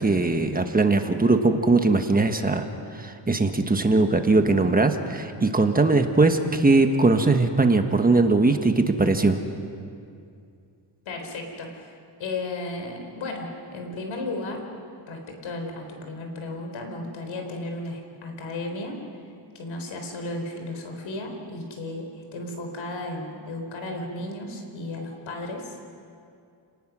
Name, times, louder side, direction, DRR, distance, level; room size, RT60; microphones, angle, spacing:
voice 1, 0.0-9.4, right 3 dB, 20° right, 6 dB, 1.3 m, -20 dB
voice 2, 11.1-11.9 12.2-14.6 15.1-19.0 19.5-25.9, left 2 dB, 85° left, 3 dB, 4.2 m, -34 dB
30.0 x 19.0 x 6.2 m, 2.4 s
cardioid pair, 125°, 45 cm